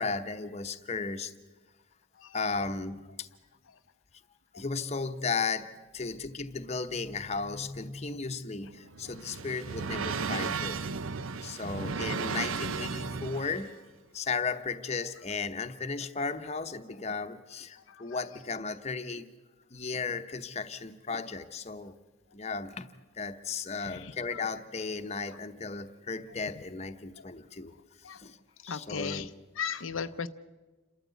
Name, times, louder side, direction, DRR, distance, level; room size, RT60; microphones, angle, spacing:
voice 1, 0.0-1.3 2.3-3.3 4.5-10.8 11.4-13.7 14.1-19.3 19.7-21.9 22.3-22.9 23.1-27.7 28.1-28.4 28.6-29.3, left 4 dB, 30° left, 8 dB, 0.9 m, -35 dB
sound 1, 8.6-13.7, right 5 dB, 75° right, 0.7 m, -35 dB
voice 2, 11.6-11.9 17.9-18.0 23.9-24.1 28.0-28.2 28.7-29.3 29.6-30.3, left 6 dB, 75° left, 9 dB, 0.6 m, -36 dB
28.5 x 13.5 x 8.2 m, 1.3 s
head